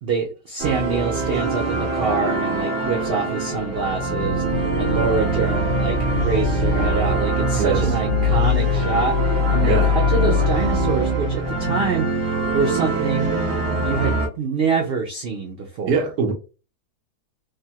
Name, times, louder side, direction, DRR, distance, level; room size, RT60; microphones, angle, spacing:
voice 1, 0.0-13.3 13.8-16.0, right 4 dB, 90° right, 0.5 m, -25 dB
sound 1, 0.6-14.3, equal, 45° right, 1.1 m, -22 dB
sound 2, 4.5-12.1, equal, 75° left, 1.0 m, -30 dB
voice 2, 7.5-7.8 9.6-9.9 15.9-16.3, right 4 dB, 70° right, 1.2 m, -22 dB
3.3 x 2.1 x 2.8 m
omnidirectional pair, 1.7 m